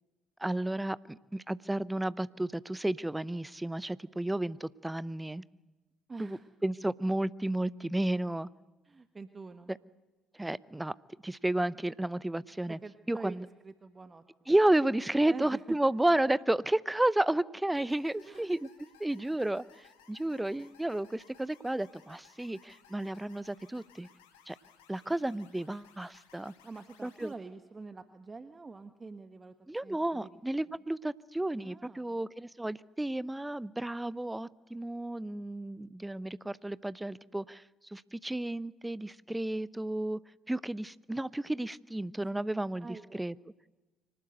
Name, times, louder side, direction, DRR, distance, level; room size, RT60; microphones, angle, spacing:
voice 1, 0.4-5.4 6.2-6.4 6.6-8.5 9.7-9.8 10.4-10.9 11.2-12.8 13.1-13.4 14.5-18.7 19.0-24.1 24.5-24.6 24.9-26.5 27.0-27.3 29.7-37.6 37.9-40.2 40.5-43.3, right 1 dB, 10° right, 20 dB, 0.8 m, -32 dB
voice 2, 6.1-6.5 8.8-9.7 12.8-14.5 15.2-15.8 18.2-18.5 26.6-29.5 29.8-30.4 31.6-32.2 42.3-42.4 42.8-43.2, right 3 dB, 30° right, 10 dB, 1.2 m, -46 dB
sound 1, 17.7-27.3, left 7 dB, 80° left, 2.3 m, -61 dB
25.0 x 19.0 x 8.0 m, 1.1 s
figure-of-eight pair, 50°, 0 cm